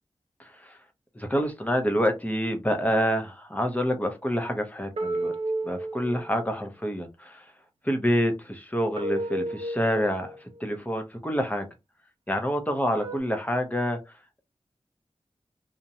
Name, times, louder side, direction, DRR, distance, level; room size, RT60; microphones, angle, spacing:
voice 1, 0.4-0.8 1.1-5.3 5.6-7.5 7.8-11.7 12.3-14.2, equal, 15° left, 0.7 m, -27 dB
sound 1, 5.0-6.6 9.0-10.6 13.0-13.2, right 1 dB, 75° right, 0.6 m, -32 dB
2.5 x 2.1 x 2.8 m
wide cardioid pair, 75°, 10 cm